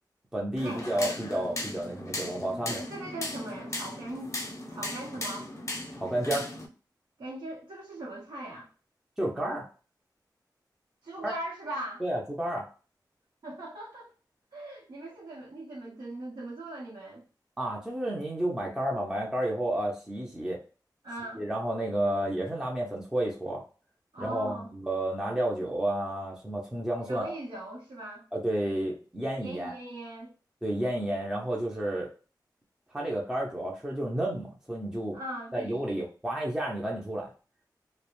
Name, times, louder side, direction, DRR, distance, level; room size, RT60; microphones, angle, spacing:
voice 1, 0.3-2.8 5.9-6.5 9.2-9.7 11.2-11.3 12.0-12.6 17.6-20.6 21.4-23.6 24.2-27.3 28.3-29.7 30.6-32.1 32.9-35.2 35.5-37.3, right 1 dB, 10° right, -3 dB, 0.5 m, -31 dB
sound 1, 0.6-6.7, left 2 dB, 40° left, 0.6 m, -37 dB
voice 2, 2.7-4.3 4.7-5.5 7.2-8.7 11.0-12.0 13.4-14.1 14.5-17.2 21.0-21.4 24.1-24.7 27.1-28.2 29.4-30.3 35.1-35.8, right 1 dB, 90° right, -6 dB, 0.8 m, -40 dB
2.4 x 2.0 x 2.9 m, 0.35 s
wide cardioid pair, 115°, 8 cm